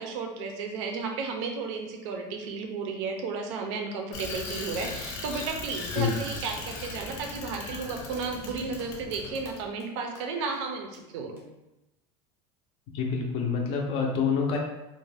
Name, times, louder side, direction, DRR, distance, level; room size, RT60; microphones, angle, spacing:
voice 1, 0.0-11.4, right 4 dB, 80° right, 3 dB, 0.5 m, -33 dB
Bicycle, 4.1-9.6, left 3 dB, 85° left, 0.7 m, -38 dB
sound 1, 7.8-8.5 8.8-9.2 9.5-9.9 10.2-10.3 10.5-10.6 10.9-11.0 11.4-11.5 13.0-13.1, right 2 dB, 15° right, 0.6 m, -51 dB
voice 2, 12.9-14.6, left 5 dB, 40° left, 0 dB, 0.4 m, -27 dB
2.5 x 2.1 x 3.2 m, 0.97 s
cardioid pair, 160°, 15 cm